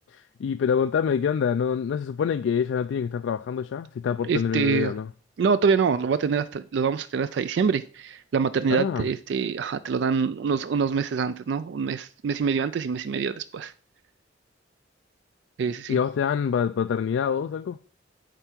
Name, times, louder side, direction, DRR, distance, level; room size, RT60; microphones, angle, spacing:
voice 1, 0.1-5.1 8.7-9.1 15.9-17.8, left 7 dB, 75° left, 0.3 m, -26 dB
voice 2, 4.2-4.9 5.4-13.7 15.6-16.0, right 6 dB, 65° right, 0.3 m, -25 dB
8.0 x 4.5 x 5.8 m
head